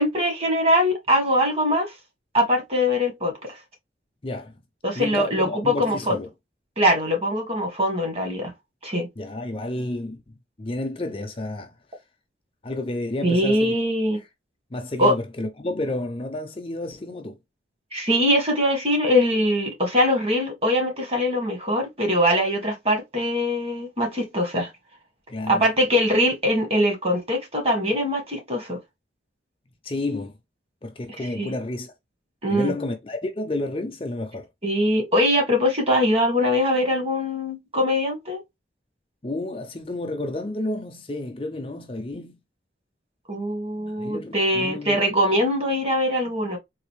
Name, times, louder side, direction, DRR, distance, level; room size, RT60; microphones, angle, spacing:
voice 1, 0.0-1.9 2.3-3.6 4.8-6.2 6.8-8.5 8.8-9.1 13.2-14.2 15.0-15.1 17.9-24.7 25.5-28.8 31.4-31.5 32.4-32.7 34.6-38.4 43.3-46.6, equal, 35° right, 1.4 m, -22 dB
voice 2, 4.2-4.6 4.9-6.3 9.2-11.7 12.6-13.7 14.7-17.4 25.3-25.7 29.8-30.4 30.8-31.9 32.5-34.5 39.2-42.4 44.0-45.0, left 2 dB, 30° left, 0.5 m, -31 dB
4.0 x 2.5 x 3.1 m
head